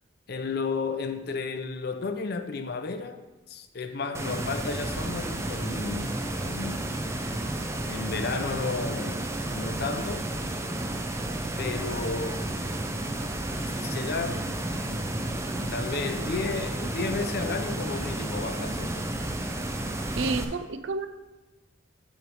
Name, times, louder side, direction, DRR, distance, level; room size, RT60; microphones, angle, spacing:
voice 1, 0.3-3.2 3.5-7.0 7.9-9.2 9.5-10.3 11.6-12.4 13.8-14.6 15.7-19.1, left 4 dB, 50° left, 0.5 m, -32 dB
sound 1, 4.1-20.4, right 1 dB, 15° right, 0.4 m, -32 dB
voice 2, 20.2-21.1, right 3 dB, 65° right, 0.4 m, -30 dB
7.8 x 3.2 x 6.2 m
head